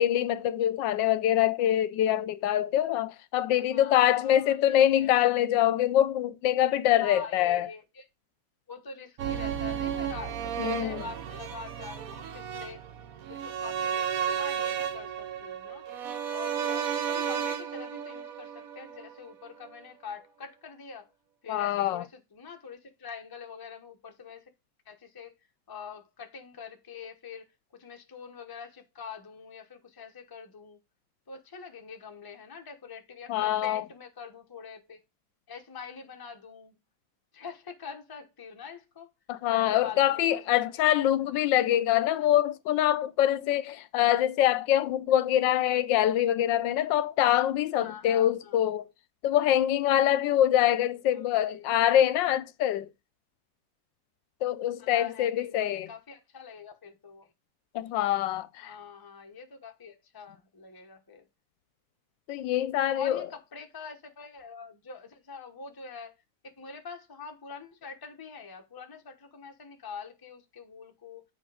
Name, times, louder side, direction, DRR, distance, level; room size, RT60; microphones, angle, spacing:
voice 1, 0.0-7.7 10.6-11.0 21.5-22.0 33.3-33.8 39.3-48.9 49.2-52.9 54.4-55.9 57.7-58.7 62.3-63.3, left 12 dB, 80° left, 1.2 m, -25 dB
voice 2, 3.7-5.1 7.0-8.0 8.7-12.8 13.3-15.9 16.3-21.1 21.4-24.5 24.9-25.3 25.7-27.5 27.7-30.8 31.3-35.0 35.5-36.8 37.3-39.1 39.5-40.6 47.7-48.6 51.4-51.7 54.8-57.3 58.6-61.3 62.8-66.1 66.4-71.2, left 5 dB, 15° left, 0.8 m, -45 dB
sound 1, 9.2-19.3 19.6-19.7, right 8 dB, 60° right, 1.1 m, -33 dB
8.5 x 4.5 x 4.8 m
omnidirectional pair, 2.0 m